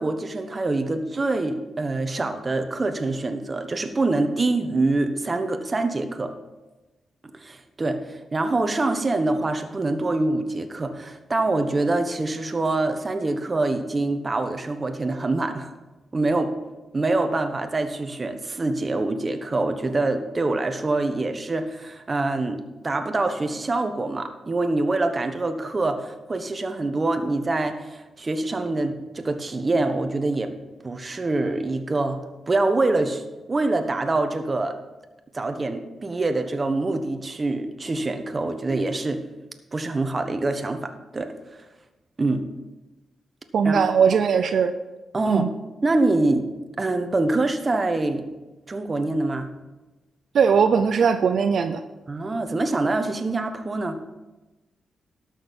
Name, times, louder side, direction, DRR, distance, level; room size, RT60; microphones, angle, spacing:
voice 1, 0.0-6.3 7.3-15.7 16.1-16.5 16.9-30.5 30.8-33.2 33.5-34.8 35.3-39.2 39.7-41.6 42.2-42.4 43.6-43.8 45.1-45.5 45.8-46.5 46.8-48.2 48.7-49.5 52.1-54.0, right 2 dB, 30° right, 7 dB, 1.1 m, -25 dB
voice 2, 43.5-44.7 45.2-45.5 50.3-51.8, right 6 dB, 70° right, 9 dB, 0.5 m, -19 dB
12.0 x 6.4 x 5.3 m, 1.1 s
cardioid pair, 85°, 0 cm